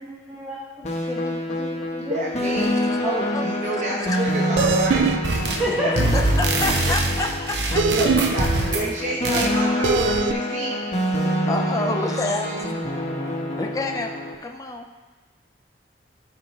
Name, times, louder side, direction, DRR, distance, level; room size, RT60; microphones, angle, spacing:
voice 1, 0.0-2.2 3.0-3.3 5.6-6.7, equal, 10° right, -9 dB, 1.3 m, -30 dB
sound 1, 0.8-14.4, equal, 40° left, 1.0 m, -26 dB
voice 2, 2.1-2.7 3.3-5.4 5.8-5.9 8.0-10.8 11.9-12.7, right 1 dB, 45° right, -4 dB, 0.9 m, -29 dB
voice 3, 2.6-3.0 3.3-3.4 3.8-4.2 5.7-5.8 6.1-7.8 11.5-12.7 13.5-14.1 14.4-14.9, left 2 dB, 20° left, 2 dB, 0.4 m, -28 dB
sound 2, 4.6-5.2 7.8-8.3 9.8-10.3, right 5 dB, 90° right, 0.4 m, -21 dB
sound 3, 5.2-5.7 5.9-8.9 9.2-9.5, right 2 dB, 70° right, 0.9 m, -23 dB
13.5 x 4.6 x 3.0 m, 1.3 s
head